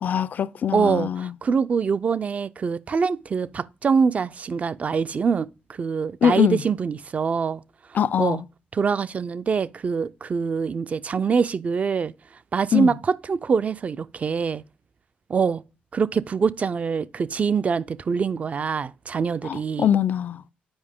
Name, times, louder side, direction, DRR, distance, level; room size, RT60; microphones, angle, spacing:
voice 1, 0.0-1.3 6.2-6.6 7.9-8.4 12.7-12.9 19.4-20.5, left 9 dB, 55° left, 0.4 m, -22 dB
voice 2, 0.7-7.6 8.2-8.4 8.7-12.1 12.5-14.6 15.3-15.6 15.9-19.9, right 5 dB, 45° right, 0.4 m, -24 dB
8.8 x 4.8 x 3.5 m
cardioid pair, 75°, 3 cm